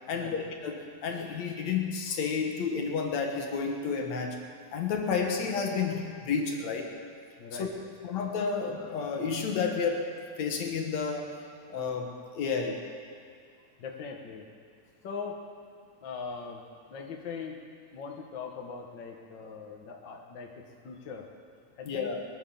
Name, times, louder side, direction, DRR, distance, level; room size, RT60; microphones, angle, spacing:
voice 1, 0.1-4.4 4.7-6.9 7.6-7.7 8.0-10.1 10.4-11.3 11.7-12.8 21.9-22.2, left 5 dB, 65° left, 2 dB, 2.5 m, -31 dB
voice 2, 7.4-7.7 13.8-14.5 15.0-15.4 16.0-16.6 16.9-17.6 17.9-21.3 21.8-22.1, left 5 dB, 50° left, 1 dB, 1.6 m, -40 dB
22.5 x 7.8 x 7.1 m, 2.3 s
omnidirectional pair, 3.5 m